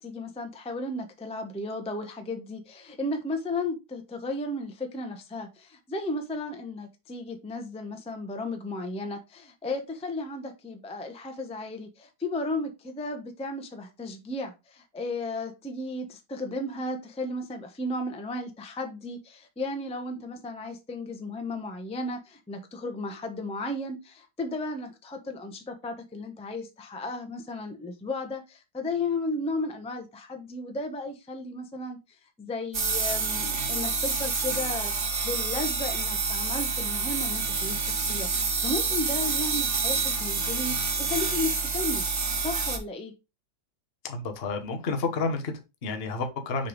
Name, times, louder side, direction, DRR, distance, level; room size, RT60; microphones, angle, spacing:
voice 1, 0.0-42.0 42.4-43.1, left 2 dB, 5° left, 0.6 m, -34 dB
sound 1, 32.7-42.8, right 4 dB, 40° right, 1.5 m, -28 dB
voice 2, 44.0-46.7, left 4 dB, 40° left, 1.1 m, -30 dB
6.6 x 3.5 x 5.0 m
omnidirectional pair, 2.1 m